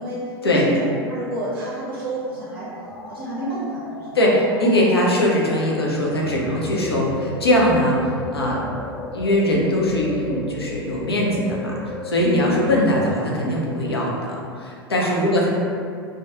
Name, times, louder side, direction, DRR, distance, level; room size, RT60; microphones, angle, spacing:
voice 1, 0.0-2.7 3.1-4.2 8.4-8.6 12.2-12.6 15.0-15.2, right 1 dB, 60° right, -6 dB, 0.5 m, -29 dB
sound 1, 2.7-13.2, left 3 dB, 20° left, 0.4 m, -35 dB
voice 2, 4.1-8.6 9.1-15.5, left 1 dB, 80° left, -3 dB, 0.5 m, -21 dB
2.3 x 2.2 x 2.7 m, 2.3 s
figure-of-eight pair, 85°, 13 cm